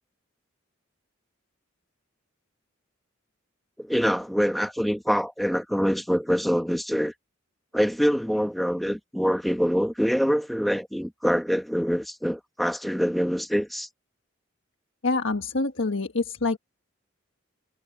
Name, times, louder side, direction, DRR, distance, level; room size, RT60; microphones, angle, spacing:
voice 1, 3.8-7.1 7.7-13.9, equal, ahead, 1.1 m, -25 dB
voice 2, 15.0-16.6, left 3 dB, 70° left, 1.4 m, -26 dB
head